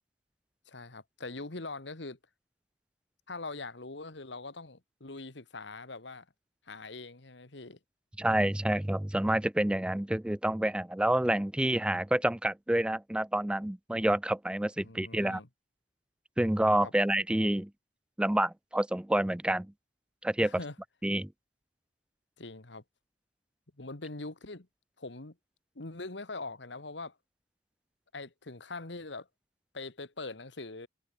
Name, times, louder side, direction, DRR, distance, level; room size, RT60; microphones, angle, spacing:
voice 1, 0.7-2.2 3.3-6.3 6.7-7.8 14.8-15.5 16.8-16.9 20.4-20.8 22.4-22.8 23.8-24.7 25.0-25.4 25.8-27.2 28.1-29.3 29.7-30.9, left 3 dB, 70° left, 1.8 m, -42 dB
voice 2, 8.2-15.4 16.4-17.7 18.2-19.7 20.2-20.5 21.0-21.3, right 1 dB, 5° right, 0.3 m, -28 dB
head